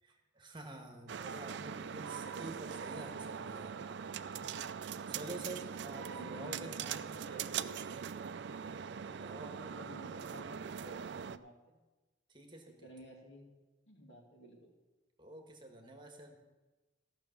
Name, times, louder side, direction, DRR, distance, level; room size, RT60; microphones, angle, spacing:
voice 1, 0.0-3.8 5.1-7.1 8.5-9.6 12.3-12.9 15.2-16.4, right 2 dB, 25° right, 2 dB, 1.3 m, -49 dB
sound 1, 1.1-11.4, right 7 dB, 65° right, 0.4 m, -42 dB
voice 2, 5.8-7.9 8.9-11.7 12.7-13.5 13.8-14.7, equal, 70° left, -1 dB, 2.6 m, -54 dB
14.5 x 6.0 x 7.1 m, 1.2 s
head